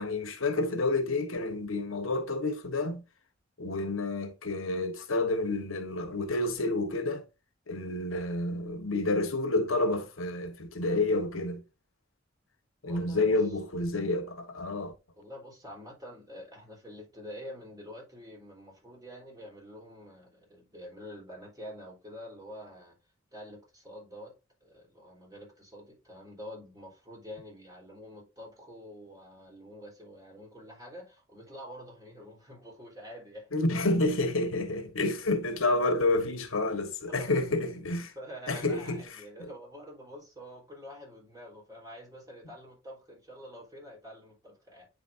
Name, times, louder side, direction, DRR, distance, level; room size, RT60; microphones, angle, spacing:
voice 1, 0.0-3.0 3.6-7.2 7.7-11.6 12.8-14.9 33.5-38.1 38.5-39.0 39.4-39.5, left 2 dB, 80° left, 1.3 m, -29 dB
voice 2, 12.8-13.6 15.2-23.0 23.3-33.5 35.6-35.8 37.0-37.3 38.2-44.9, equal, 20° right, 3.4 m, -47 dB
9.0 x 5.2 x 2.6 m
head